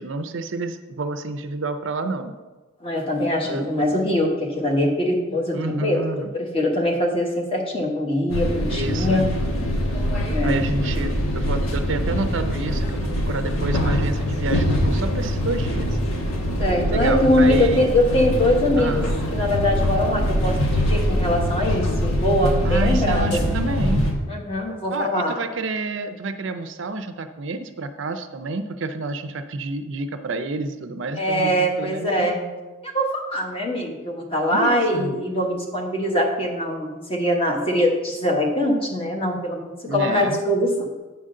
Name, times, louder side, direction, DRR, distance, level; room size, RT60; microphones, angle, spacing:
voice 1, 0.0-2.3 3.4-3.9 5.5-6.3 8.7-9.2 10.4-16.0 16.9-17.9 18.8-19.2 22.6-24.1 24.9-32.3 34.5-35.1 39.9-40.4, right 3 dB, 60° right, 8 dB, 0.5 m, -29 dB
voice 2, 2.8-9.3 10.3-10.6 16.6-23.4 24.3-25.3 31.2-32.4 32.8-40.9, left 1 dB, 25° left, 0 dB, 1.2 m, -22 dB
sound 1, 8.3-24.1, equal, 80° left, 1.3 m, -23 dB
9.0 x 3.7 x 6.5 m, 1.2 s
head